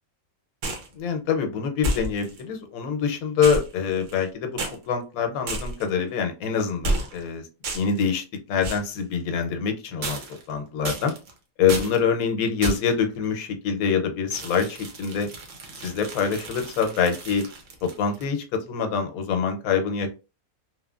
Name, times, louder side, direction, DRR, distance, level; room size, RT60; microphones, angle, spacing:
sound 1, 0.6-0.9 1.8-2.4 3.4-4.3 4.6-4.8 5.5-5.9 6.8-7.3 7.6-8.0 8.6-8.9 10.0-10.5 10.8-11.3 11.7-12.0 12.6-13.0 14.3-18.3, right 1 dB, 65° right, 1.0 m, -31 dB
voice 1, 0.9-4.6 4.9-7.4 7.7-10.2 10.5-11.1 11.6-15.3 15.8-17.5 17.8-20.1, left 6 dB, 90° left, 6 dB, 1.1 m, -25 dB
3.0 x 2.1 x 2.3 m, 0.32 s
omnidirectional pair, 1.4 m